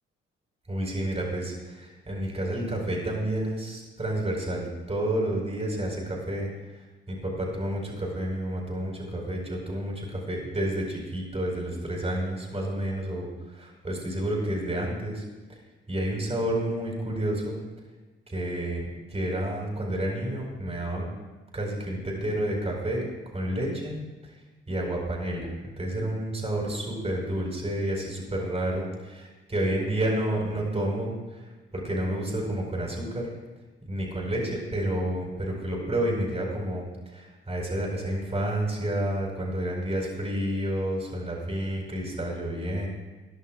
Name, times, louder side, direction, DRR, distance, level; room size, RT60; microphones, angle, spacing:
voice 1, 0.7-6.5 7.1-15.2 15.9-17.6 18.3-21.1 21.5-23.0 23.3-24.0 24.7-28.8 29.5-31.4 31.7-33.3 33.9-42.9, right 1 dB, 20° right, -3 dB, 4.7 m, -30 dB
20.5 x 11.0 x 2.4 m, 1.2 s
figure-of-eight pair, 40°, 29 cm